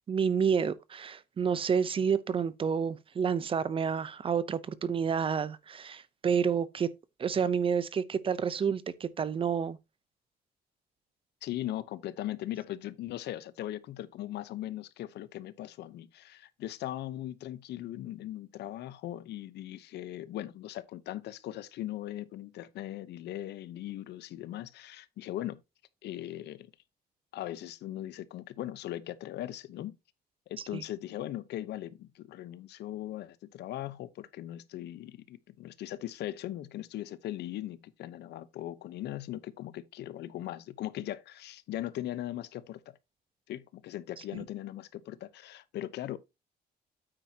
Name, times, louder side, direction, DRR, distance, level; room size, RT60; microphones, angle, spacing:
voice 1, 0.1-6.9 7.2-9.8 30.7-30.8, right 7 dB, 30° right, 0.6 m, -29 dB
voice 2, 11.4-25.6 26.0-26.7 27.3-29.9 30.5-43.0 43.5-46.2, left 13 dB, 85° left, 0.8 m, -39 dB
8.9 x 8.8 x 2.8 m
cardioid pair, 160°, 17 cm